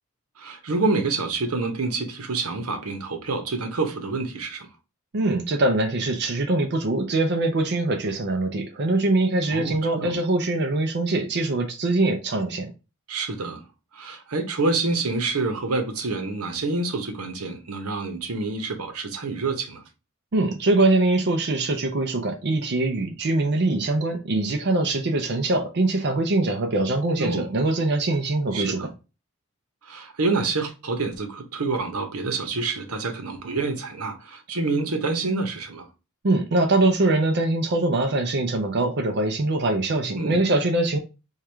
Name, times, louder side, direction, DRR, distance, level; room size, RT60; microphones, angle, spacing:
voice 1, 0.4-4.7 9.5-10.2 13.1-13.6 13.9-19.8 27.2-27.5 28.5-28.9 29.8-35.9 40.1-40.4, right 3 dB, 90° right, 0.9 m, -27 dB
voice 2, 5.1-12.7 20.3-28.9 36.2-41.0, right 2 dB, 50° right, 0.5 m, -23 dB
4.6 x 2.4 x 3.3 m
head